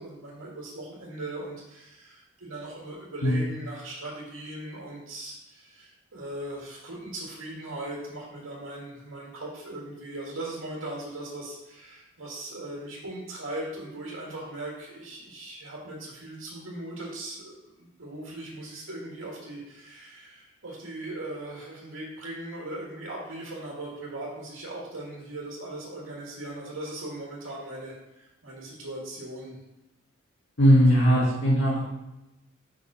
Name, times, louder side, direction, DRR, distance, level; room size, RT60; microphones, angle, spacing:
voice 1, 0.0-29.6, right 1 dB, 80° right, -3 dB, 1.5 m, -39 dB
voice 2, 30.6-31.8, equal, 65° left, -6 dB, 1.4 m, -19 dB
5.2 x 5.1 x 4.7 m, 0.95 s
head